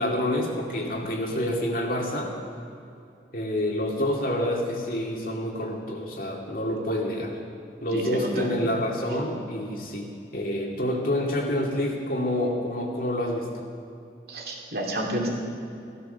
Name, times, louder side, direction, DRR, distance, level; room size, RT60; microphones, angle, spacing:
voice 1, 0.0-2.3 3.3-7.3 7.8-13.7, left 1 dB, 50° left, 0 dB, 2.3 m, -28 dB
voice 2, 7.9-8.7 14.3-15.3, right 1 dB, 60° right, -1 dB, 2.8 m, -30 dB
16.0 x 13.0 x 6.8 m, 2.5 s
head